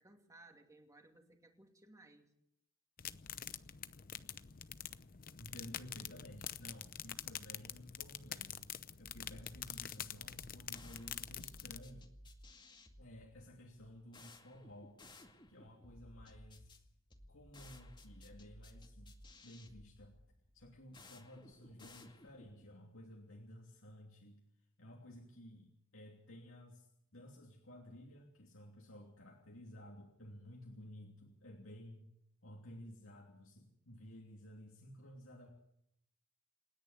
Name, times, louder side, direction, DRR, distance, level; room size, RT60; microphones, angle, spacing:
voice 1, 0.0-2.3, right 2 dB, 15° right, 4 dB, 2.8 m, -61 dB
sound 1, 3.0-11.8, left 10 dB, 45° left, 0.8 m, -47 dB
voice 2, 5.4-8.7 9.0-12.1 13.0-15.0 15.5-16.8 17.3-19.1 19.4-20.2 20.5-24.4 24.8-32.1 32.4-35.5, equal, 70° left, 0 dB, 2.9 m, -54 dB
sound 2, 9.0-22.6, left 1 dB, 25° left, 2.2 m, -58 dB
28.0 x 10.5 x 9.6 m, 0.76 s
head